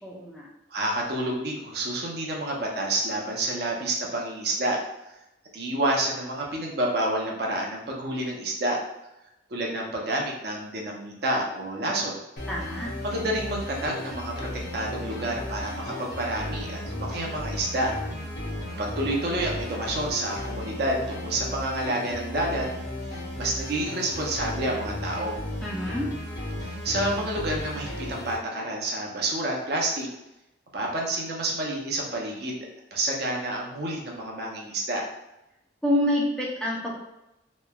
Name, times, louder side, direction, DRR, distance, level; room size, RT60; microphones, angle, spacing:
voice 1, 0.0-0.5 12.5-12.9 25.6-26.1 35.8-36.9, left 1 dB, 5° left, -5 dB, 0.4 m, -27 dB
voice 2, 0.7-4.8 5.5-8.8 9.5-12.2 13.0-17.9 18.8-22.7 23.1-25.4 26.6-30.1 30.7-32.6 32.9-35.0, right 1 dB, 55° right, -1 dB, 0.5 m, -29 dB
sound 1, 12.4-28.4, left 1 dB, 55° left, 0.7 m, -35 dB
3.0 x 2.1 x 2.2 m, 0.91 s
head